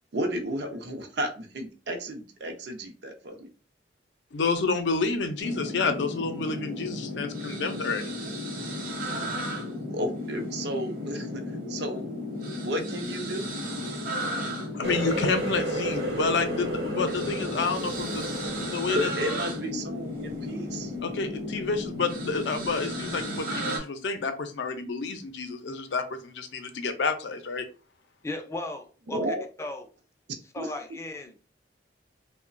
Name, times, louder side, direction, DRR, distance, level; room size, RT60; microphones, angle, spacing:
voice 1, 0.1-3.5 9.9-11.4 11.7-12.3 12.5-13.5 18.9-20.9 29.1-29.4 30.6-30.7, equal, 70° right, 0.6 m, -32 dB
voice 2, 4.3-8.2 14.7-19.1 21.0-27.7, left 4 dB, 85° left, 0.5 m, -29 dB
sound 1, 5.4-23.8, left 1 dB, 50° right, 0.8 m, -34 dB
Water tap faucet, 14.8-20.3 20.7-21.2 21.6-21.9 22.7-22.8, right 1 dB, 90° right, 0.9 m, -33 dB
voice 3, 28.2-29.9 30.4-31.4, left 2 dB, 15° left, 0.4 m, -36 dB
2.9 x 2.1 x 2.5 m
head